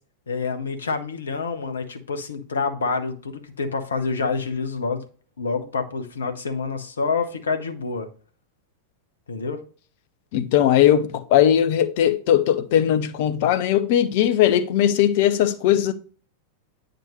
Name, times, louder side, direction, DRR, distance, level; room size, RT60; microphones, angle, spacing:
voice 1, 0.3-5.1 5.4-8.1 9.3-9.6, left 4 dB, 70° left, 1.0 m, -27 dB
voice 2, 10.3-15.9, left 10 dB, 50° left, 0.7 m, -19 dB
8.9 x 5.1 x 3.1 m
figure-of-eight pair, 90°, 0 cm